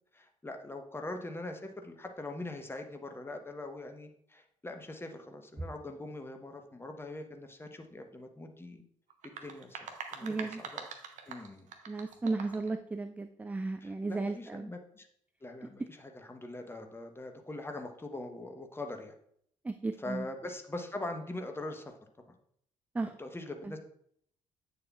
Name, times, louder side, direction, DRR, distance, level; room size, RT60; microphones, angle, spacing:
voice 1, 0.1-8.8 9.2-9.8 10.1-10.9 11.3-11.7 13.8-15.1 15.4-19.2 20.0-21.9 22.3-22.4 23.2-23.8, left 2 dB, 15° left, 5 dB, 1.0 m, -42 dB
sound 1, 9.1-12.7, right 6 dB, 50° right, 0.9 m, -44 dB
voice 2, 10.2-10.6 11.9-14.7 19.6-20.3 22.9-23.1 23.6-23.8, right 3 dB, 10° right, 9 dB, 0.3 m, -35 dB
8.7 x 6.7 x 2.4 m, 0.68 s
figure-of-eight pair, 45°, 16 cm